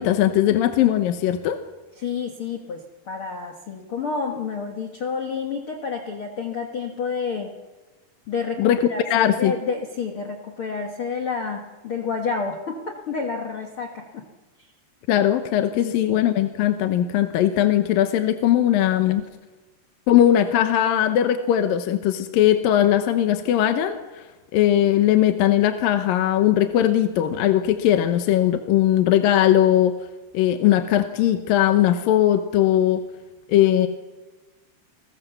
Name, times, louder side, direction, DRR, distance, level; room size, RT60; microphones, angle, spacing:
voice 1, 0.0-1.6 8.6-9.5 15.1-19.2 20.1-24.0 24.5-29.9 30.3-33.0 33.5-33.9, left 11 dB, 70° left, 8 dB, 2.6 m, -19 dB
voice 2, 2.0-7.5 8.3-14.3 15.7-16.2, left 5 dB, 55° left, 3 dB, 1.6 m, -29 dB
30.0 x 20.5 x 7.0 m, 1.2 s
omnidirectional pair, 4.5 m